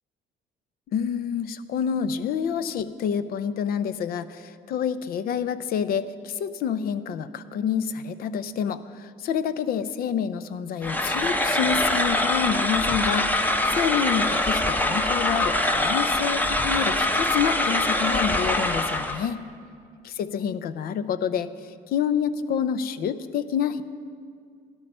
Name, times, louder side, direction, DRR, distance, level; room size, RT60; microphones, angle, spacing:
voice 1, 0.9-19.4 20.0-23.8, left 8 dB, 65° left, 14 dB, 0.6 m, -28 dB
sound 1, 10.8-19.2, left 1 dB, 10° left, 0.8 m, -24 dB
13.0 x 11.5 x 5.5 m, 2.2 s
cardioid pair, 110°, 17 cm